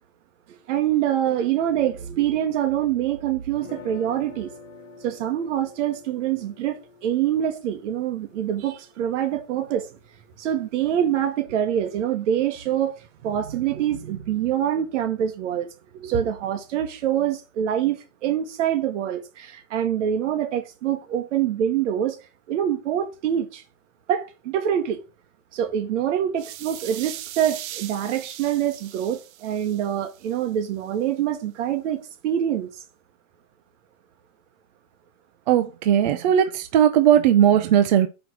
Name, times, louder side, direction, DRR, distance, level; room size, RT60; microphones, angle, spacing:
voice 1, 0.7-4.5 5.0-9.9 10.4-15.7 15.9-22.2 22.5-23.6 24.1-25.0 25.5-32.8, right 10 dB, 60° right, 1.2 m, -25 dB
sound 1, 3.5-9.5, left 4 dB, 65° left, 2.0 m, -47 dB
sound 2, 26.4-30.4, right 13 dB, 90° right, 0.8 m, -39 dB
voice 2, 35.5-38.1, right 10 dB, 35° right, 0.5 m, -18 dB
6.1 x 5.2 x 6.1 m
supercardioid pair, 175°, 41 cm